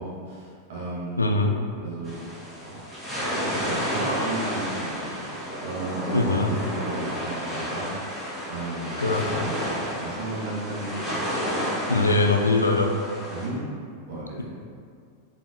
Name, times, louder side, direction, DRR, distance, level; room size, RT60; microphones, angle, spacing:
voice 1, 0.0-1.2 1.8-2.8 3.2-5.3 5.6-11.2 13.3-13.7 14.1-14.4, right 2 dB, 55° right, -7 dB, 1.3 m, -34 dB
voice 2, 1.2-1.5 6.1-6.5 9.0-9.2 11.9-12.9, left 3 dB, 80° left, 3 dB, 0.3 m, -21 dB
sound 1, 2.0-13.5, equal, ahead, 1.5 m, -31 dB
4.0 x 3.8 x 2.5 m, 2.2 s
figure-of-eight pair, 90°, 0 cm